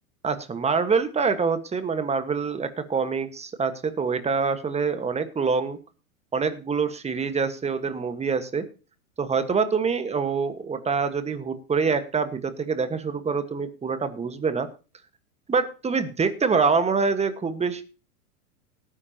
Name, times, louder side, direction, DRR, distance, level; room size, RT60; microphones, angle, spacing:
voice 1, 0.2-5.8 6.3-8.7 9.2-14.7 15.5-17.8, right 5 dB, 15° right, 10 dB, 1.5 m, -25 dB
18.0 x 9.9 x 2.9 m, 0.34 s
hypercardioid pair, 105°, 44 cm